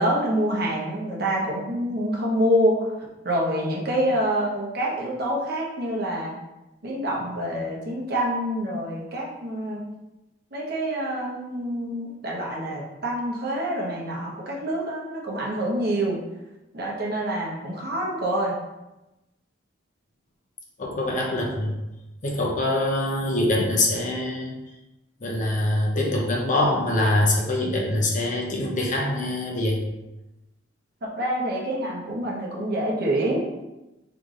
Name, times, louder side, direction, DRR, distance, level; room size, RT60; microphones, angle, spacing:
voice 1, 0.0-2.9 3.2-6.3 6.8-9.8 10.5-16.2 16.7-18.5 31.0-33.6, right 1 dB, 55° right, -3 dB, 1.1 m, -26 dB
voice 2, 20.8-21.8 22.2-24.5 25.2-29.8, left 1 dB, 45° left, -1 dB, 0.8 m, -24 dB
3.4 x 3.4 x 3.9 m, 0.98 s
head